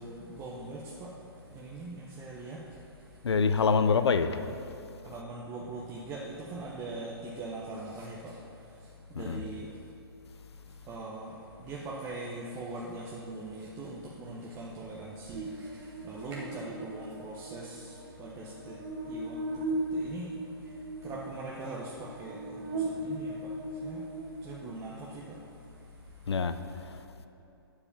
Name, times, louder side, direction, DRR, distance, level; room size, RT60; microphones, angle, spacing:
voice 1, 0.0-3.3 4.2-4.3 5.0-9.9 10.6-26.3, right 2 dB, 20° right, 0.8 m, -42 dB
voice 2, 3.2-4.5 9.2-9.4 26.3-26.6 26.9-27.0, left 5 dB, 85° left, 0.6 m, -25 dB
Buzz, 15.3-24.8, right 1 dB, 45° right, 1.2 m, -38 dB
9.7 x 4.9 x 7.2 m
hypercardioid pair, 145°, 13 cm